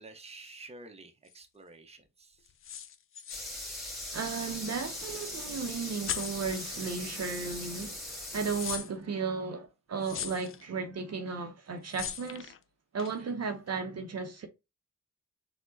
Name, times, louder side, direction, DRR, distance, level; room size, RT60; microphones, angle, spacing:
voice 1, 0.0-2.5, right 2 dB, 20° right, 0.8 m, -50 dB
sound 1, 1.3-1.4 2.5-4.3 4.5-4.6 4.9-5.5 5.9-6.5 7.4-7.5 7.8-8.9 10.0-10.7 11.8-12.6 13.0-13.2, left 9 dB, 40° left, 0.4 m, -40 dB
sound 2, 3.3-8.8, left 1 dB, ahead, 1.5 m, -40 dB
voice 2, 4.1-12.5 12.9-14.5, right 5 dB, 50° right, 0.6 m, -35 dB
4.2 x 2.2 x 2.5 m
supercardioid pair, 50°, 33 cm